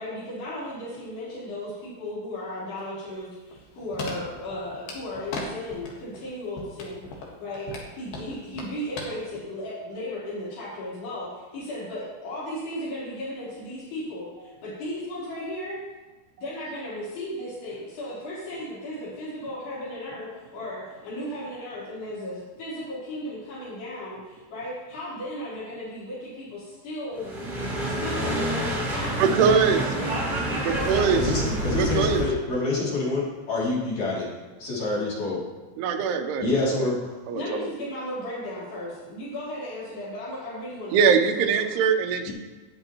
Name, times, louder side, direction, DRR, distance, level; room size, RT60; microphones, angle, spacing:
voice 1, 0.0-15.8 16.4-27.3 27.8-31.1 37.4-41.1 41.4-41.7, left 1 dB, 85° left, -10 dB, 6.0 m, -35 dB
sound 1, 3.1-5.4 5.7-6.3 6.6-9.0 9.4-9.5, left 4 dB, 70° left, 3.3 m, -37 dB
sound 2, 27.2-32.4, right 1 dB, 25° right, 2.8 m, -28 dB
voice 2, 29.2-29.8 30.6-31.2 31.7-32.2 35.8-37.0 37.3-37.7 40.9-42.3, right 6 dB, 85° right, 6 dB, 2.9 m, -22 dB
voice 3, 31.1-34.3 34.6-35.4 36.4-37.1 42.3-42.4, left 3 dB, 50° left, -6 dB, 3.8 m, -27 dB
19.0 x 6.8 x 3.0 m, 1.2 s
omnidirectional pair, 4.6 m